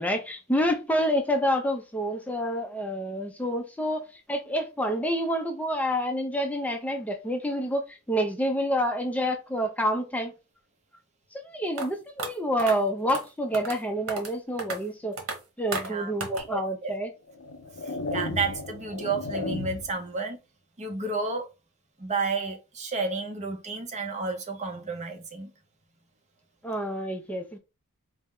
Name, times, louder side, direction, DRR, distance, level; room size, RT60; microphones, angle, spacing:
voice 1, 0.0-10.3 11.4-15.2 15.6-17.1 26.6-27.6, equal, 5° left, 0.5 m, -28 dB
sound 1, 11.8-11.9 12.2-12.3 12.6-12.7 13.1-13.2 13.5-13.8 14.1-14.3 14.6-14.8 15.2-15.4 15.7-15.9 16.2-16.4, right 3 dB, 70° right, 1.0 m, -32 dB
voice 2, 15.7-17.0 17.8-20.4 20.8-21.5 22.0-25.5, right 4 dB, 35° right, 0.7 m, -31 dB
sound 2, 16.4-16.5 17.3-20.0, left 2 dB, 75° left, 0.6 m, -34 dB
4.3 x 2.0 x 3.6 m
head